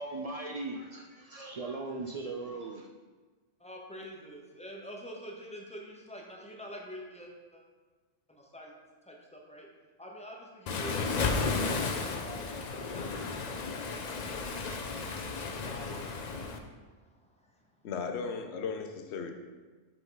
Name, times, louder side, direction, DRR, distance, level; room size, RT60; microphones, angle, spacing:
voice 1, 0.0-2.9, right 2 dB, 70° right, 1 dB, 0.3 m, -38 dB
voice 2, 3.6-7.6 8.3-8.7 9.1-9.7 10.0-14.0 14.8-15.0 15.5-17.6, equal, 5° left, -1 dB, 0.7 m, -47 dB
Waves surf, 10.7-16.6, left 4 dB, 50° left, 0.5 m, -33 dB
voice 3, 17.8-19.3, left 5 dB, 70° left, 5 dB, 0.9 m, -36 dB
7.9 x 3.8 x 3.8 m, 1.4 s
omnidirectional pair, 1.2 m